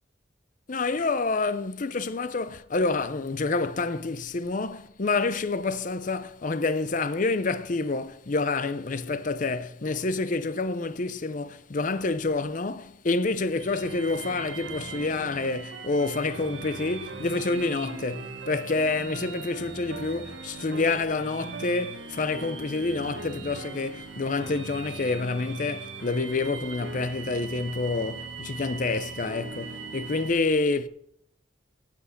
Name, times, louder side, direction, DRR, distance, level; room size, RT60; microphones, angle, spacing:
voice 1, 0.7-30.9, left 3 dB, 45° left, 0.6 m, -28 dB
sound 1, 13.6-30.3, right 4 dB, 85° right, 1.2 m, -40 dB
17.5 x 6.0 x 5.8 m
head